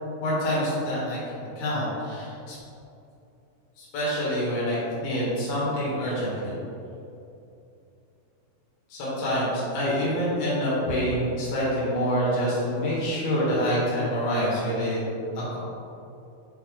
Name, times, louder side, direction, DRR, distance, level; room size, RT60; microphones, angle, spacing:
voice 1, 0.2-2.6 3.8-6.6 8.9-15.6, equal, 75° left, -8 dB, 3.5 m, -26 dB
8.8 x 3.4 x 3.7 m, 2.7 s
omnidirectional pair, 4.4 m